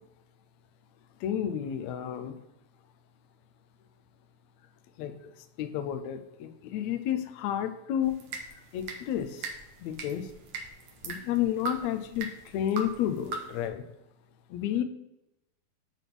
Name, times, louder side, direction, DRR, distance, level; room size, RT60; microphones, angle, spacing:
voice 1, 1.2-2.4 5.0-5.1 5.6-8.2 8.7-9.5 9.8-10.3 11.0-13.8 14.5-14.8, left 10 dB, 85° left, 8 dB, 1.6 m, -31 dB
sound 1, 8.0-13.7, right 3 dB, 65° right, 1.7 m, -41 dB
9.7 x 3.6 x 6.1 m, 0.89 s
omnidirectional pair, 4.1 m